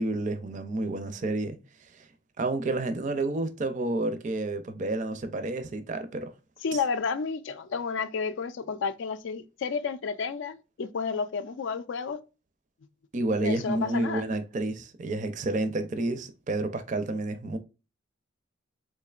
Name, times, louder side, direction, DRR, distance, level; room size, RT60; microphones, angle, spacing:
voice 1, 0.0-1.6 2.0-2.1 2.4-6.3 13.1-17.6, right 2 dB, 40° right, 0.4 m, -30 dB
voice 2, 6.6-12.2 13.4-14.2, left 5 dB, 70° left, 0.4 m, -31 dB
3.5 x 3.2 x 2.3 m
head